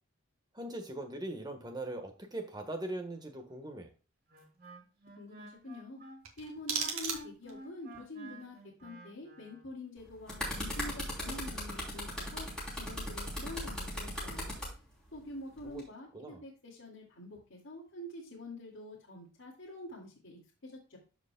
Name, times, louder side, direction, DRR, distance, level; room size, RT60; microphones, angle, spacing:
voice 1, 0.5-3.9 15.6-15.8 16.1-16.4, right 1 dB, 20° right, 5 dB, 1.3 m, -40 dB
Wind instrument woodwind instrument, 4.3-9.7, right 1 dB, 45° right, 2.8 m, -51 dB
voice 2, 5.2-6.0 6.4-8.5 8.8-14.6 15.1-21.0, left 1 dB, 60° left, -4 dB, 2.2 m, -46 dB
sound 1, 6.2-7.7, right 6 dB, 80° right, 1.9 m, -37 dB
sound 2, 10.0-14.7 15.6-15.8, left 1 dB, 5° left, 3.1 m, -37 dB
13.0 x 5.1 x 2.2 m, 0.33 s
head